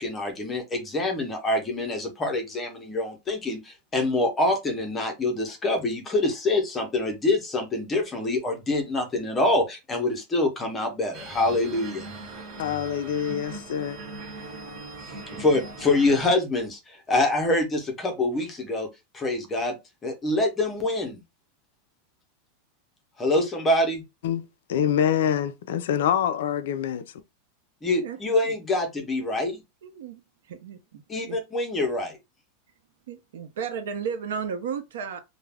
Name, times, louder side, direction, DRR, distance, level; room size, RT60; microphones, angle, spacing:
voice 1, 0.0-12.1 15.4-18.9 19.1-19.8 20.0-21.2 23.2-24.0 27.8-29.6 31.1-32.2, left 2 dB, 10° left, 0.5 m, -25 dB
sound 1, 11.1-16.3, right 2 dB, 35° right, 0.8 m, -40 dB
voice 2, 12.6-14.0 24.2-27.1, left 9 dB, 70° left, 0.3 m, -26 dB
voice 3, 29.8-30.2 30.5-31.4 33.1-35.2, right 7 dB, 80° right, 0.6 m, -34 dB
2.3 x 2.0 x 3.2 m
supercardioid pair, 175°, 0 cm